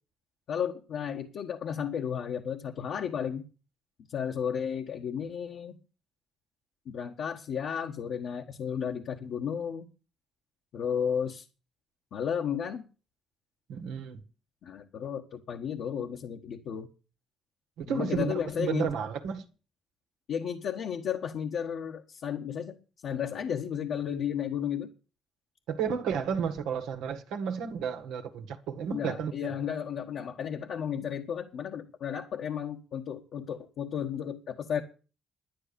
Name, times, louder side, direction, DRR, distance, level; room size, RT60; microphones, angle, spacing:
voice 1, 0.5-3.4 4.1-5.8 6.9-9.9 10.7-11.4 12.1-12.8 14.6-16.9 17.9-18.9 20.3-22.8 23.0-24.9 28.9-34.8, left 8 dB, 70° left, 1.4 m, -33 dB
voice 2, 13.7-14.2 17.8-19.4 25.7-29.5, right 7 dB, 80° right, 1.7 m, -32 dB
11.0 x 10.0 x 6.9 m
supercardioid pair, 60°, 0 cm